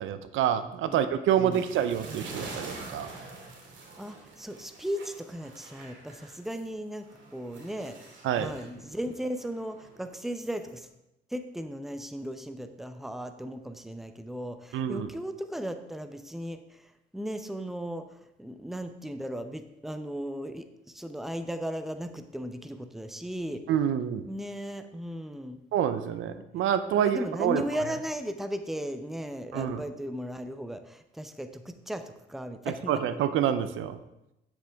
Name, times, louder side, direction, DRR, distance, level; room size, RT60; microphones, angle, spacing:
voice 1, 0.0-3.1 8.2-8.5 14.7-15.1 23.7-24.3 25.7-27.6 29.5-29.8 32.9-34.0, right 9 dB, 85° right, 11 dB, 0.7 m, -27 dB
sound 1, 1.5-6.7 7.0-10.7, right 3 dB, 65° right, 2.5 m, -46 dB
voice 2, 4.0-7.1 7.3-10.9 11.3-23.6 24.3-25.6 26.5-26.7 27.0-33.0, equal, ahead, 8 dB, 0.8 m, -36 dB
9.9 x 7.9 x 3.5 m, 0.87 s
cardioid pair, 90°, 20 cm